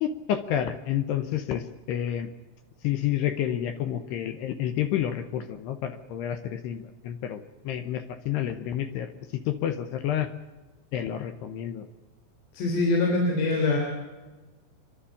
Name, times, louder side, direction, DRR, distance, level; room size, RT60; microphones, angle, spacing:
voice 1, 0.0-2.3 2.8-10.3 10.9-11.9, left 10 dB, 80° left, 9 dB, 2.5 m, -29 dB
voice 2, 12.5-13.8, left 2 dB, 60° left, 0 dB, 5.4 m, -23 dB
27.0 x 11.5 x 8.5 m, 1.2 s
omnidirectional pair, 5.8 m